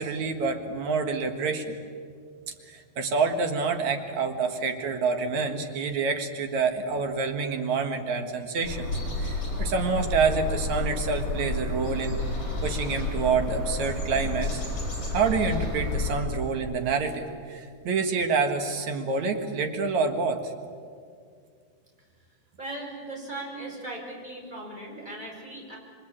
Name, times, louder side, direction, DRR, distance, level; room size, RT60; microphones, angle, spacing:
voice 1, 0.0-1.8 2.7-8.9 9.2-12.2 12.6-14.6 15.1-20.5, right 4 dB, 60° right, 5 dB, 3.0 m, -27 dB
sound 1, 8.6-16.2, left 2 dB, 40° left, 8.2 m, -30 dB
voice 2, 22.6-25.8, right 2 dB, 15° right, -1 dB, 5.7 m, -38 dB
27.5 x 23.5 x 8.9 m, 2.2 s
omnidirectional pair, 3.7 m